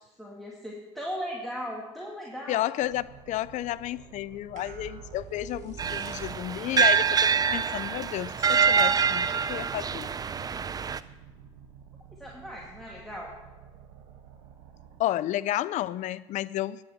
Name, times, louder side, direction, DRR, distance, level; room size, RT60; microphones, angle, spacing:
voice 1, 0.2-2.6 12.2-13.3, equal, ahead, -3 dB, 2.1 m, -37 dB
voice 2, 2.5-10.1 15.0-16.8, left 14 dB, 55° left, 19 dB, 0.5 m, -31 dB
sound 1, 2.8-15.0, right 7 dB, 75° right, 1.5 m, -52 dB
sound 2, 4.6-6.8, right 5 dB, 55° right, 1.3 m, -44 dB
sound 3, 5.8-11.0, right 6 dB, 25° right, 0.5 m, -25 dB
10.5 x 6.5 x 7.4 m, 1.2 s
supercardioid pair, 80°, 15 cm